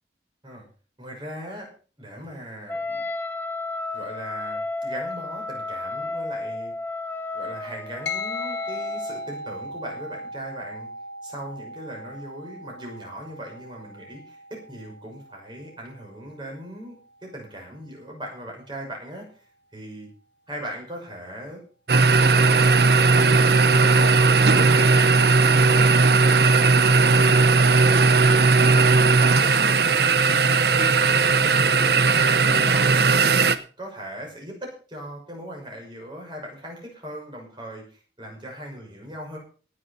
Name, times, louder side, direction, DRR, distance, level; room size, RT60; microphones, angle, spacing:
voice 1, 1.0-1.7 2.0-3.0 3.9-6.7 7.3-10.9 11.2-16.9 17.2-19.5 19.7-20.1 20.5-21.6 21.9-25.1 25.5-29.8 30.1-31.0 31.4-33.0 33.8-39.4, equal, 25° right, 0 dB, 6.1 m, -39 dB
Wind instrument woodwind instrument, 2.7-9.3, left 2 dB, 10° left, 0.8 m, -32 dB
sound 1, 8.1-17.8, left 2 dB, 80° left, 1.6 m, -39 dB
sound 2, 21.9-33.6, right 4 dB, 60° right, 0.9 m, -17 dB
18.0 x 7.0 x 5.8 m, 0.38 s
head